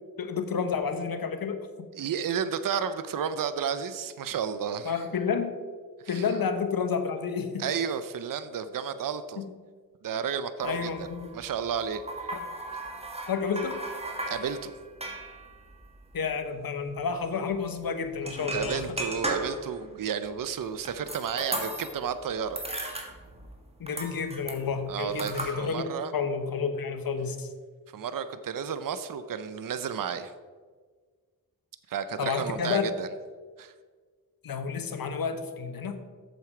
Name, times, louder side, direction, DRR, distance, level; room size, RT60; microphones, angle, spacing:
voice 1, 0.2-1.6 4.8-5.6 6.1-7.6 9.4-9.5 10.6-11.3 12.3-12.4 13.3-13.8 16.1-19.0 23.8-27.5 32.2-32.9 34.4-36.0, left 6 dB, 70° left, 8 dB, 1.0 m, -30 dB
voice 2, 2.0-5.0 6.0-6.2 7.6-9.4 10.0-11.1 11.3-12.3 14.3-14.7 18.5-22.6 24.9-26.1 27.9-30.3 31.9-33.1 33.6-33.7, right 7 dB, 60° right, 11 dB, 0.6 m, -32 dB
sound 1, 10.6-16.6 16.9-17.0 17.2-17.4 18.1-19.8 20.3-22.2 22.4-23.6 23.9-25.5, right 1 dB, 15° right, 1.7 m, -37 dB
7.7 x 7.0 x 4.8 m, 1.5 s
cardioid pair, 60°, 37 cm